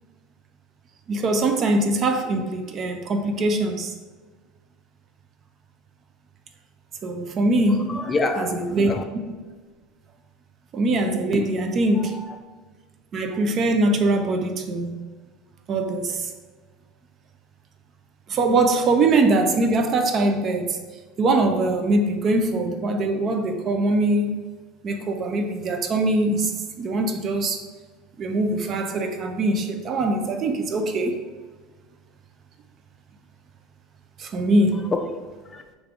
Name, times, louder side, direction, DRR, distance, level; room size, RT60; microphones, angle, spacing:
voice 1, 1.1-3.9 7.0-7.9 8.4-8.9 10.7-12.2 13.1-14.9 15.7-16.3 18.3-20.8 21.2-24.4 24.8-27.6 28.2-31.2 34.2-34.8, right 2 dB, 40° right, 0.5 m, -22 dB
voice 2, 7.8-9.0 11.3-11.6 12.0-12.4 34.9-35.6, left 3 dB, 25° left, 0.3 m, -28 dB
3.2 x 2.5 x 3.5 m
supercardioid pair, 100°, 0 cm